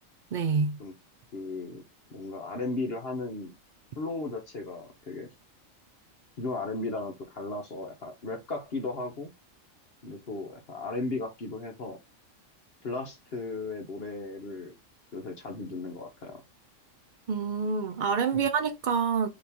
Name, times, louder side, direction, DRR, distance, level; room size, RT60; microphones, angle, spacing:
voice 1, 0.3-0.8 17.3-19.3, right 5 dB, 55° right, 0.5 m, -27 dB
voice 2, 1.3-1.8 2.1-3.6 4.0-5.3 6.4-9.3 10.0-12.0 12.8-14.7 15.1-16.4 18.3-18.4, left 3 dB, 50° left, 1.0 m, -35 dB
4.3 x 3.0 x 3.4 m
omnidirectional pair, 1.4 m